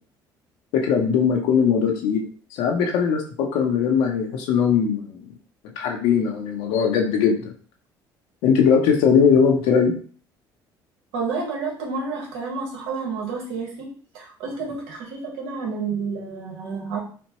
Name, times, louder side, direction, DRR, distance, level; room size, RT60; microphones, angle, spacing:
voice 1, 0.7-2.2 2.5-5.2 5.8-7.5 8.4-9.9, left 6 dB, 90° left, 1 dB, 0.8 m, -20 dB
voice 2, 11.1-17.0, right 4 dB, 85° right, -1 dB, 1.3 m, -30 dB
4.3 x 2.2 x 2.9 m, 0.42 s
cardioid pair, 95°, 9 cm